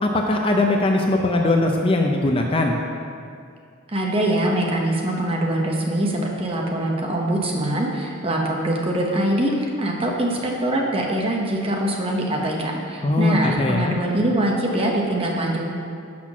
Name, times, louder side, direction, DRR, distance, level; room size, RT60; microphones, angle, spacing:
voice 1, 0.0-2.8 13.0-13.9, left 2 dB, 25° left, 2 dB, 0.5 m, -20 dB
voice 2, 3.9-15.7, right 1 dB, 25° right, -1 dB, 0.9 m, -23 dB
6.1 x 5.9 x 6.0 m, 2.3 s
head